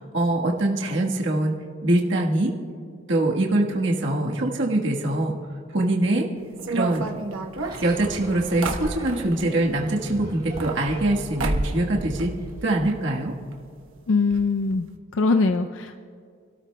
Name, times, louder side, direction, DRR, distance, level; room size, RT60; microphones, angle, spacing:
voice 1, 0.0-1.6 1.8-2.5 3.1-5.4 5.7-6.3 6.7-7.1 7.8-12.3 12.6-13.3, right 1 dB, 60° right, -1 dB, 1.3 m, -23 dB
sound 1, 6.6-9.5 10.3-11.1 11.4-11.9 12.2-13.0 13.2-13.3 13.5-13.6 14.3-14.4 14.7-14.9, right 2 dB, 80° right, 1.0 m, -30 dB
sound 2, 7.6-12.7, right 1 dB, 25° right, 3.0 m, -39 dB
voice 2, 14.1-14.9 15.1-16.0, left 3 dB, 65° left, 7 dB, 0.4 m, -22 dB
28.5 x 13.0 x 2.2 m, 2.2 s
head